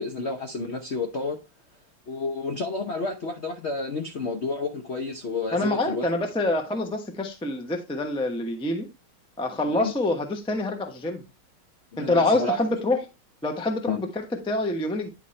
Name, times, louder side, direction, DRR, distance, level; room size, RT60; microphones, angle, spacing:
voice 1, 0.0-1.4 2.1-6.1 9.6-9.9 11.9-12.6 13.9-14.0, left 3 dB, 65° left, 0.6 m, -30 dB
voice 2, 5.5-8.9 9.4-11.2 12.0-13.0 13.4-15.1, left 2 dB, 5° left, 0.4 m, -26 dB
10.0 x 4.2 x 3.2 m
omnidirectional pair, 2.3 m